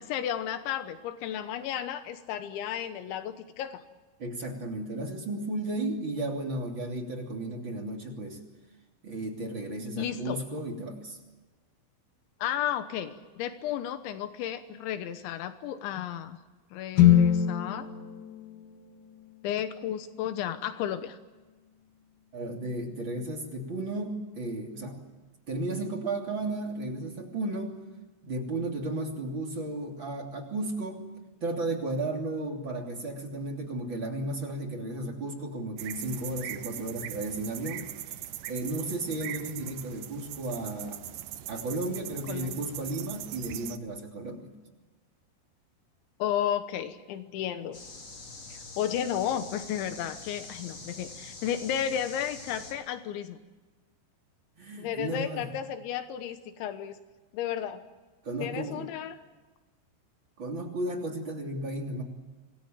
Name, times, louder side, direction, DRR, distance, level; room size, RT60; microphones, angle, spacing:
voice 1, 0.1-3.8 10.0-10.4 12.4-16.4 16.7-17.9 19.4-21.2 42.3-42.6 46.2-47.8 48.5-53.4 54.8-57.0 57.3-57.8 58.4-59.2, left 10 dB, 85° left, 9 dB, 3.5 m, -33 dB
voice 2, 4.2-8.4 9.0-11.2 22.3-25.0 25.5-27.8 28.2-31.0 31.4-37.9 38.5-41.0 41.5-44.5 54.6-55.5 58.2-58.9 60.4-62.0, right 2 dB, 30° right, 1 dB, 3.2 m, -34 dB
sound 1, 16.9-21.0, left 10 dB, 55° left, 4.0 m, -26 dB
sound 2, 35.8-43.8, right 12 dB, 80° right, 1.9 m, -40 dB
sound 3, 47.7-52.7, left 3 dB, 35° left, 4.2 m, -45 dB
26.5 x 20.0 x 9.1 m, 1.3 s
omnidirectional pair, 5.2 m